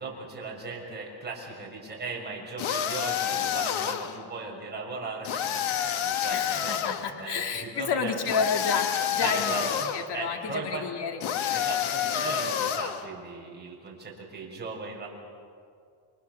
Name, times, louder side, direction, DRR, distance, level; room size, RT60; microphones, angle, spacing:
voice 1, 0.0-6.8 7.2-8.1 9.2-9.9 10.1-10.9 11.5-15.1, right 3 dB, 20° right, -2 dB, 6.4 m, -37 dB
sound 1, 2.6-4.2 5.2-7.0 8.3-10.1 11.2-13.0, left 9 dB, 85° left, 1.7 m, -28 dB
voice 2, 6.3-11.2, left 5 dB, 55° left, 3 dB, 2.0 m, -30 dB
29.5 x 25.0 x 7.0 m, 2.3 s
cardioid pair, 175°, 46 cm